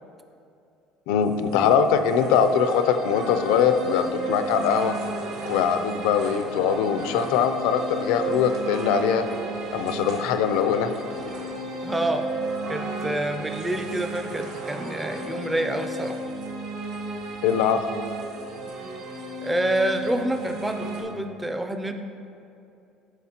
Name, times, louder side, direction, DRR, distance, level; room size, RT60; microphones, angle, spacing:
voice 1, 1.1-5.0 5.5-9.2 9.7-10.9 17.4-17.8, left 7 dB, 85° left, 9 dB, 0.5 m, -22 dB
sound 1, 1.2-21.0, right 2 dB, 80° right, 1.5 m, -34 dB
voice 2, 11.8-12.3 12.7-16.2 19.4-21.9, right 1 dB, 10° right, 7 dB, 0.4 m, -27 dB
14.0 x 4.7 x 2.9 m, 2.6 s
cardioid pair, 145°, 0 cm